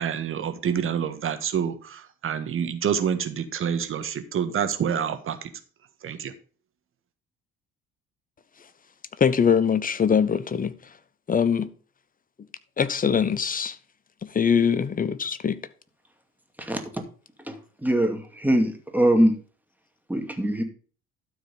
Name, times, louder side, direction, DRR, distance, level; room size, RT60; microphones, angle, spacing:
voice 1, 0.0-5.5 6.0-6.3, right 8 dB, 45° right, 1.5 m, -27 dB
voice 2, 9.2-10.7 11.3-11.7 12.8-13.8 14.3-15.6, left 7 dB, 30° left, 0.9 m, -22 dB
voice 3, 17.8-19.3 20.1-20.6, right 1 dB, 5° right, 2.5 m, -22 dB
12.5 x 4.8 x 5.4 m
hypercardioid pair, 55°, 30 cm